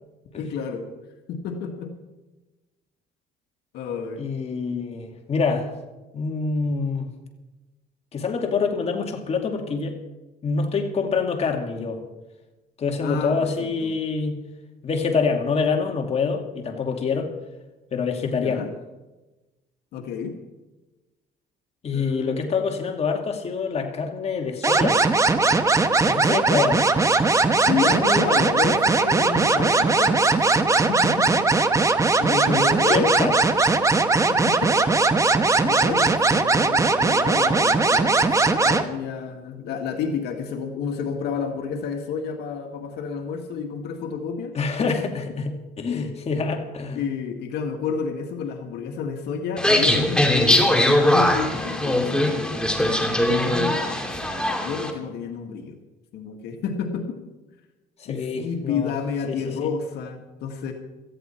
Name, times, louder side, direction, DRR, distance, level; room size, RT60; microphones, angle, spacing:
voice 1, 0.4-0.9 1.3-1.9 3.7-4.2 13.0-13.5 13.8-14.0 18.3-18.7 19.9-20.4 21.9-22.6 27.7-30.4 30.8-31.5 32.2-33.2 34.3-34.9 35.6-44.5 47.0-54.1 54.6-55.8 56.1-57.2 58.1-60.7, left 6 dB, 80° left, 4 dB, 1.8 m, -30 dB
voice 2, 4.2-5.7 6.1-7.1 8.1-10.0 10.4-12.0 12.8-14.4 14.8-17.3 17.9-18.6 21.8-25.0 26.1-26.8 32.5-33.8 44.5-47.0 58.0-58.9 59.3-59.7, left 5 dB, 40° left, 3 dB, 2.4 m, -26 dB
sound 1, 24.6-38.8, right 3 dB, 20° right, 1.1 m, -19 dB
sound 2, 49.6-54.9, left 1 dB, 5° left, 2.5 m, -21 dB
18.0 x 14.0 x 4.5 m, 1.1 s
cardioid pair, 110°, 17 cm